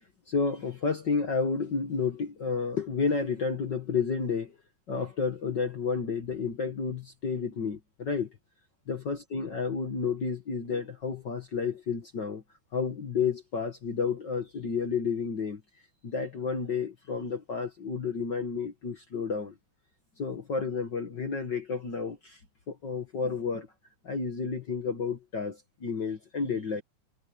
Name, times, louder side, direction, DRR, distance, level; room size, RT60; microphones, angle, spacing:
voice 1, 0.3-4.6 4.9-8.3 8.9-12.4 12.7-15.6 16.0-19.5 20.2-22.4 22.7-23.7 24.0-26.8, left 5 dB, 60° left, 1.1 m, -31 dB
omnidirectional pair, 4.4 m